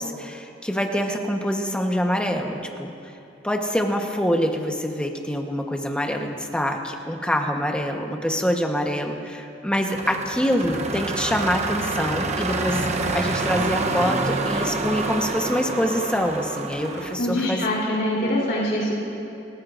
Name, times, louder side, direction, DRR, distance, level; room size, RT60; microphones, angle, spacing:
voice 1, 0.0-2.9 3.4-12.9 13.1-17.6 18.2-18.3, equal, 5° left, 2 dB, 1.1 m, -25 dB
sound 1, 9.9-17.2, right 3 dB, 35° right, 0.9 m, -27 dB
voice 2, 17.2-19.0, left 1 dB, 60° left, -4 dB, 3.6 m, -24 dB
29.5 x 14.0 x 2.6 m, 2.9 s
head